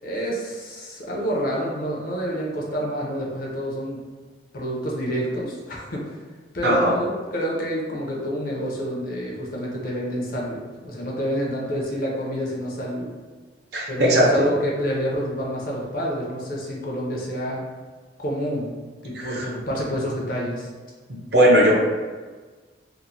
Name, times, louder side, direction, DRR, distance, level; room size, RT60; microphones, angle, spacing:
voice 1, 0.0-4.0 4.5-6.2 6.5-13.1 13.9-17.6 18.2-20.7, equal, 50° left, -3 dB, 0.5 m, -28 dB
voice 2, 6.6-7.0 13.7-14.5 19.1-19.5 21.3-21.7, equal, 60° right, -2 dB, 0.5 m, -18 dB
2.9 x 2.0 x 2.6 m, 1.4 s
head